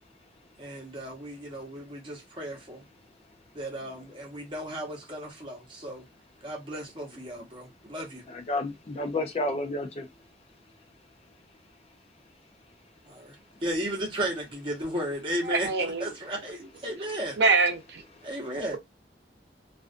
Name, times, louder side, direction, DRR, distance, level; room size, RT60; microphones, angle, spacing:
voice 1, 0.6-2.8 3.5-6.0 6.4-8.2 13.1-13.4 13.6-17.4 18.2-18.8, right 1 dB, 30° right, 0.9 m, -34 dB
voice 2, 8.3-10.1 13.7-13.8 18.2-18.3, left 2 dB, 35° left, 0.4 m, -31 dB
voice 3, 15.5-16.1 17.4-18.0, right 4 dB, 80° right, 0.6 m, -24 dB
2.4 x 2.4 x 2.4 m
head